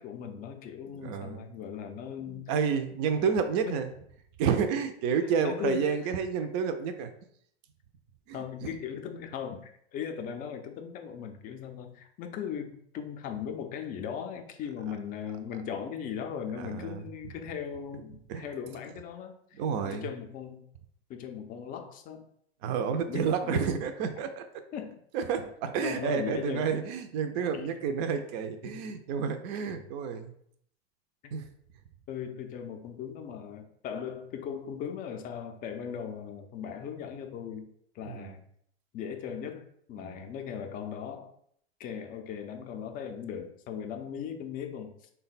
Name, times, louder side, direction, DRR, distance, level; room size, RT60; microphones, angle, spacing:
voice 1, 0.0-2.5 3.2-3.3 3.6-3.8 5.4-6.0 8.3-19.4 19.8-20.7 21.1-22.3 23.1-23.8 24.7-25.0 25.8-26.9 27.5-27.8 28.6-28.8 29.7-29.8 31.2-31.3 32.1-37.7 37.9-38.4 38.9-41.3 41.8-45.1, left 8 dB, 25° left, 5 dB, 0.4 m, -38 dB
voice 2, 1.0-1.5 2.3-3.9 4.4-7.1 8.3-8.7 16.6-17.0 18.3-18.4 19.6-20.1 22.6-24.5 25.1-30.3 31.3-31.5 38.1-38.4 40.0-40.2, right 6 dB, 40° right, 8 dB, 0.5 m, -30 dB
3.6 x 2.2 x 4.0 m, 0.66 s
hypercardioid pair, 115°, 32 cm